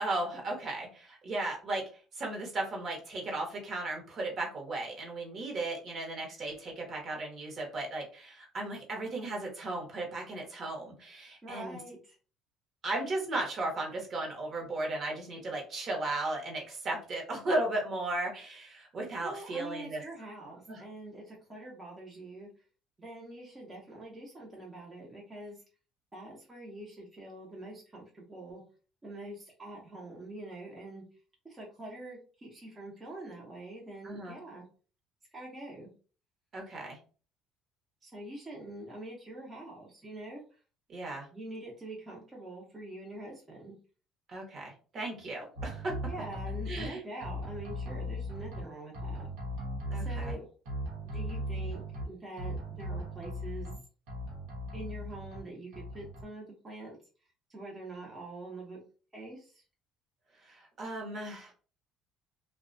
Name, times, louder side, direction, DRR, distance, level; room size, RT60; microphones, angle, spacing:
voice 1, 0.0-1.8 2.1-11.8 12.8-20.0 20.7-20.8 34.0-34.4 36.5-37.0 40.9-41.3 44.3-45.9 46.7-47.0 49.9-50.4 60.4-61.5, right 2 dB, 45° right, 1 dB, 0.9 m, -35 dB
voice 2, 11.4-12.2 19.2-22.5 23.0-25.6 26.1-28.6 29.0-31.0 31.4-34.6 35.3-35.9 38.0-40.4 41.3-43.7 46.1-49.3 49.9-50.4 51.0-53.7 54.7-57.0 57.5-58.8 59.1-59.5, right 2 dB, 20° right, -3 dB, 0.7 m, -45 dB
sound 1, 45.6-46.9 47.2-48.6 48.9-50.3 50.7-52.0 52.4-53.8 54.1-55.4 55.7-56.2, equal, 90° right, 0.9 m, -38 dB
2.3 x 2.1 x 2.5 m, 0.38 s
cardioid pair, 110°, 0 cm